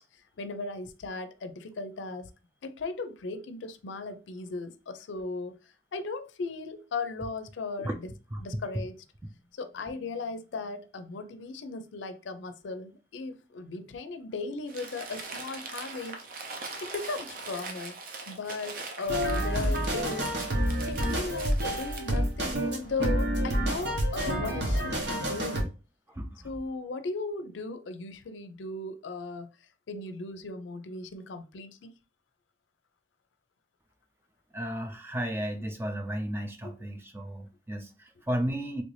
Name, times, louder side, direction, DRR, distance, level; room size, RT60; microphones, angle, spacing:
voice 1, 0.4-2.3 2.6-5.6 5.9-8.1 8.4-9.0 9.5-16.2 16.8-18.0 18.3-20.3 20.8-25.7 26.4-29.5 29.9-31.9 36.6-36.7, left 3 dB, 85° left, 0.5 m, -37 dB
Crumpling crinkling, 14.7-22.3, right 3 dB, 50° right, 0.6 m, -42 dB
sound 1, 19.1-25.6, right 1 dB, 70° right, 1.0 m, -28 dB
voice 2, 34.5-38.8, equal, 10° right, 0.4 m, -33 dB
3.2 x 2.6 x 3.1 m
head